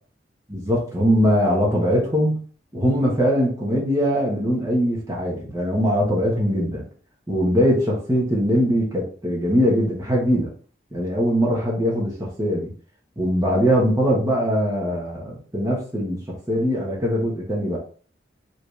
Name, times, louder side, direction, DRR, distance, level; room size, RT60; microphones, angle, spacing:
voice 1, 0.5-2.4 2.7-6.8 7.3-10.5 10.9-12.7 13.2-17.8, equal, 15° right, -4 dB, 1.2 m, -21 dB
5.1 x 3.2 x 3.2 m, 0.42 s
head